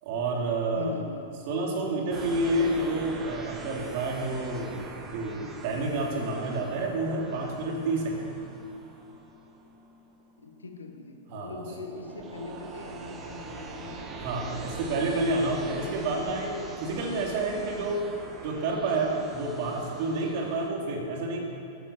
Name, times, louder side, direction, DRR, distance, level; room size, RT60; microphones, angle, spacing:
voice 1, 0.0-0.9 1.5-4.7 5.1-8.2 11.3-11.6 14.2-18.0 18.4-21.4, right 2 dB, 50° right, 0 dB, 3.5 m, -29 dB
voice 2, 0.7-1.3 10.4-14.1, left 5 dB, 80° left, 6 dB, 1.5 m, -41 dB
sound 1, 2.1-20.7, right 3 dB, 30° right, 2.1 m, -42 dB
13.5 x 12.0 x 7.4 m, 2.7 s
figure-of-eight pair, 95°, 0 cm